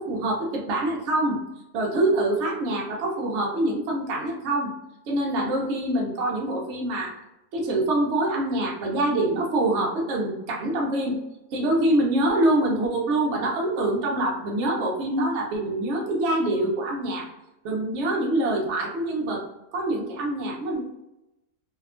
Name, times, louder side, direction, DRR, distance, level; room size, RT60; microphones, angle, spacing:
voice 1, 0.0-1.4 1.7-4.7 5.1-7.2 7.5-11.2 11.5-17.3 17.6-19.5 19.7-20.8, right 1 dB, 60° right, -2 dB, 0.8 m, -25 dB
2.8 x 2.2 x 2.4 m, 0.92 s
omnidirectional pair, 1.6 m